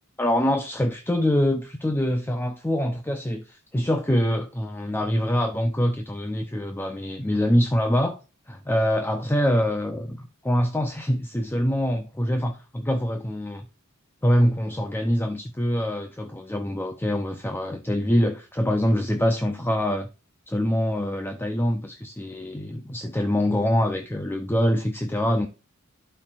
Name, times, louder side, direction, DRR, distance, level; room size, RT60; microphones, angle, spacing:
voice 1, 0.2-8.2 8.5-13.7 14.2-20.1 20.5-25.5, equal, 10° left, 0.6 m, -24 dB
12.0 x 4.5 x 2.4 m
head